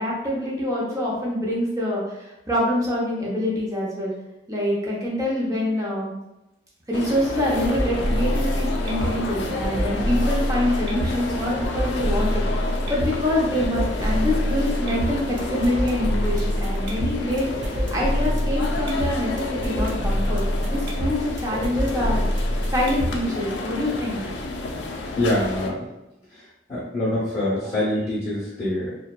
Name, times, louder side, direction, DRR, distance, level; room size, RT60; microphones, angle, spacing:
voice 1, 0.0-4.1 4.5-6.1 6.9-22.2 22.7-24.2, left 1 dB, 20° right, -4 dB, 0.5 m, -25 dB
sound 1, 6.9-25.7, left 2 dB, 70° left, 0.3 m, -32 dB
sound 2, 7.3-23.3, equal, 80° right, 0.6 m, -26 dB
voice 2, 25.1-25.9 26.3-28.9, left 1 dB, 20° left, -10 dB, 0.7 m, -25 dB
2.6 x 2.2 x 2.2 m, 0.93 s
head